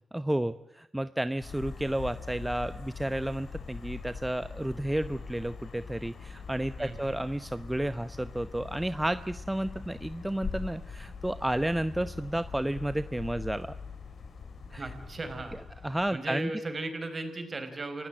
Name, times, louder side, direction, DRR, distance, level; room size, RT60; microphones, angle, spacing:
voice 1, 0.1-13.7 14.7-14.8 15.8-16.5, right 1 dB, 10° right, 12 dB, 0.9 m, -31 dB
sound 1, 1.4-16.1, left 5 dB, 65° left, 3.4 m, -42 dB
voice 2, 6.8-7.2 14.8-15.8 16.1-18.1, right 2 dB, 45° right, 8 dB, 5.1 m, -37 dB
28.0 x 17.0 x 7.7 m, 0.83 s
supercardioid pair, 40°, 0 cm